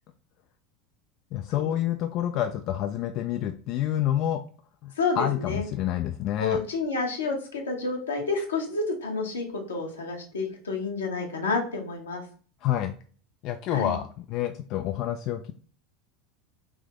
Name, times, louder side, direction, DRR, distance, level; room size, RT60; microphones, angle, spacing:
voice 1, 1.3-4.4 4.8-6.6 12.6-12.9 13.4-15.5, left 11 dB, 50° left, 6 dB, 0.3 m, -28 dB
voice 2, 5.0-5.6 6.4-12.2 13.7-13.9, left 4 dB, 85° left, 1 dB, 1.0 m, -29 dB
3.5 x 2.7 x 3.6 m, 0.42 s
hypercardioid pair, 80°, 0 cm